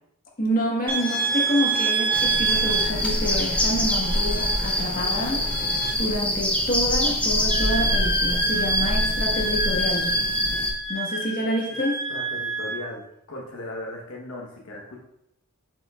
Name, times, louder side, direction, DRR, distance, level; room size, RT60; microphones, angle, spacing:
voice 1, 0.4-5.4 6.0-10.2 10.9-12.1, equal, 40° left, -2 dB, 1.2 m, -27 dB
sound 1, 0.9-5.9, right 5 dB, 40° right, 1.9 m, -27 dB
sound 2, 2.1-10.7, left 1 dB, 5° left, 0.6 m, -25 dB
Wind instrument woodwind instrument, 7.5-12.8, right 1 dB, 65° right, 2.5 m, -28 dB
voice 2, 12.1-15.0, left 2 dB, 65° left, -2 dB, 1.0 m, -37 dB
7.9 x 5.3 x 2.3 m, 0.79 s
head